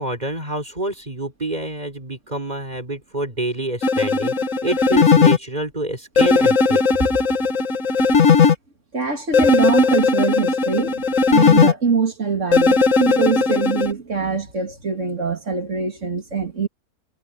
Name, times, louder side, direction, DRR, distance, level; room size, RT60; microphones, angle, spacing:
voice 1, 0.0-4.3 4.6-6.8, right 2 dB, 25° right, 4.3 m, -27 dB
sound 1, 3.8-5.4 6.2-8.5 9.3-11.7 12.5-13.9, left 4 dB, 55° left, 1.8 m, -17 dB
voice 2, 8.9-16.7, right 5 dB, 50° right, 3.0 m, -23 dB
omnidirectional pair, 1.6 m